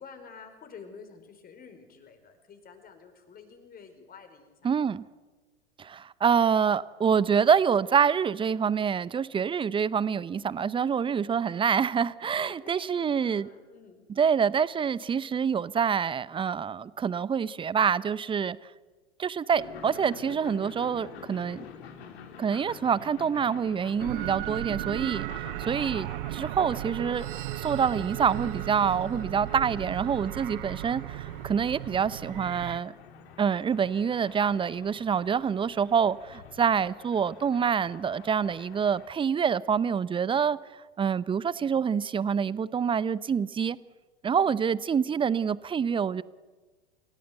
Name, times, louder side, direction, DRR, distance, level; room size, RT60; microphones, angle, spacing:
voice 1, 0.0-4.9 12.2-14.0 44.3-44.6, left 6 dB, 25° left, 4.8 m, -50 dB
voice 2, 4.6-5.0 5.8-13.5 14.2-18.6 19.2-21.6 22.4-27.3 27.5-32.9 33.4-40.6 41.0-43.8 44.2-46.2, right 7 dB, 15° right, 0.7 m, -26 dB
sound 1, 19.5-39.1, left 7 dB, 65° left, 3.4 m, -48 dB
sound 2, 24.0-32.8, right 18 dB, 50° right, 0.6 m, -36 dB
29.5 x 17.0 x 8.1 m
figure-of-eight pair, 90°, 33 cm